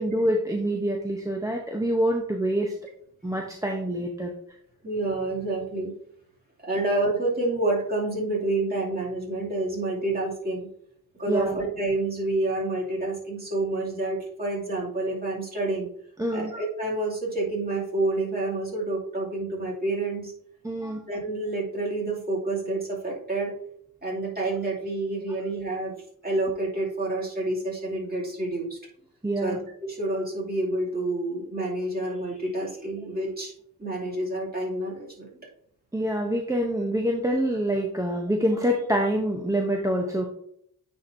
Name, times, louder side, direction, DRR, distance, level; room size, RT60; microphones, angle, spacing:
voice 1, 0.0-2.7 3.2-4.3 11.3-11.6 16.2-16.5 20.6-21.0 29.2-29.6 35.9-40.3, equal, 10° right, 1 dB, 0.7 m, -26 dB
voice 2, 4.8-5.9 6.6-10.7 11.1-15.9 16.3-20.3 21.1-23.5 24.0-26.0 26.2-28.8 29.4-33.5 33.8-35.3, right 2 dB, 25° right, -4 dB, 2.5 m, -28 dB
9.2 x 4.4 x 2.6 m, 0.68 s
cardioid pair, 85°, 36 cm